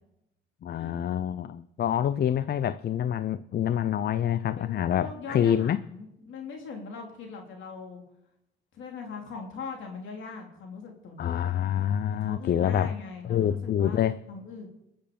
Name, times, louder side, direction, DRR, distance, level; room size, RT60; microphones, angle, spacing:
voice 1, 0.6-5.8 11.2-12.9 13.2-14.2, left 10 dB, 55° left, 0.6 m, -26 dB
voice 2, 4.6-8.0 8.7-11.5 12.1-14.0 14.3-14.7, left 5 dB, 75° left, 3.5 m, -41 dB
20.5 x 8.0 x 6.9 m
cardioid pair, 90°, 20 cm